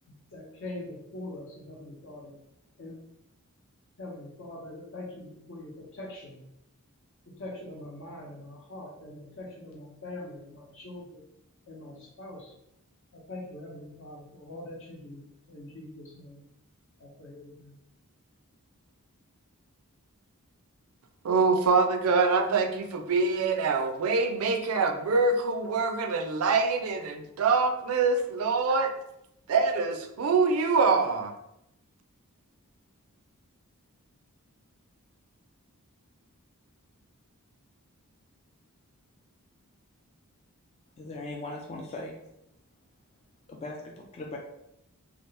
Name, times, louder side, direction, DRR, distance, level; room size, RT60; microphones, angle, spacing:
voice 1, 0.3-2.3 2.8-3.0 4.0-6.4 7.3-11.3 11.7-12.5 13.1-16.5 17.0-17.8, left 1 dB, 60° left, -1 dB, 0.8 m, -43 dB
voice 2, 21.2-28.9 29.5-31.3, right 4 dB, 70° right, 6 dB, 0.4 m, -25 dB
voice 3, 41.0-42.1 43.5-44.4, left 2 dB, 30° left, -1 dB, 0.3 m, -39 dB
2.9 x 2.3 x 3.2 m, 0.81 s
head